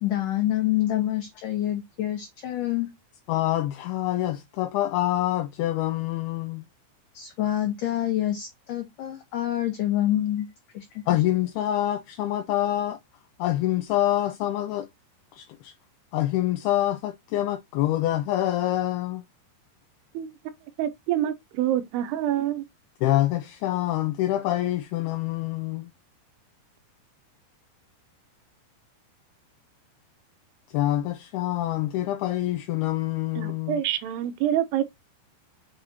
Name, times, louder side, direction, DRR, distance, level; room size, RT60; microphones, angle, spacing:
voice 1, 0.0-2.9 7.1-10.5 10.7-11.0, left 13 dB, 65° left, 2.2 m, -27 dB
voice 2, 3.3-6.6 11.1-13.0 13.4-14.9 15.4-15.7 16.1-19.2 23.0-25.9 30.7-33.8, left 14 dB, 85° left, 2.3 m, -26 dB
voice 3, 20.8-22.6 33.4-34.8, right 11 dB, 80° right, 2.7 m, -26 dB
7.7 x 4.9 x 2.8 m
omnidirectional pair, 4.9 m